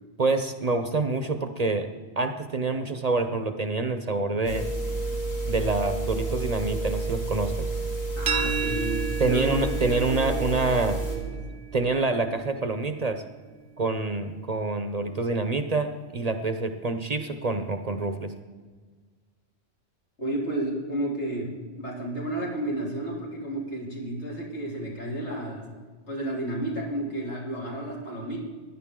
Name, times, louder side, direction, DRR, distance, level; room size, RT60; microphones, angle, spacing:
voice 1, 0.2-1.9 2.2-4.7 5.5-7.7 9.2-11.0 11.7-13.2 13.8-18.3, right 3 dB, 40° right, 8 dB, 0.7 m, -27 dB
sound 1, 4.4-11.2, right 3 dB, 65° left, 3.0 m, -30 dB
voice 2, 8.2-10.5 11.0-11.4 20.2-25.7 26.1-28.4, right 1 dB, 85° left, -3 dB, 3.4 m, -32 dB
sound 2, 8.3-14.0, right 6 dB, 65° right, 0.9 m, -35 dB
16.5 x 11.0 x 3.7 m, 1.5 s
omnidirectional pair, 1.1 m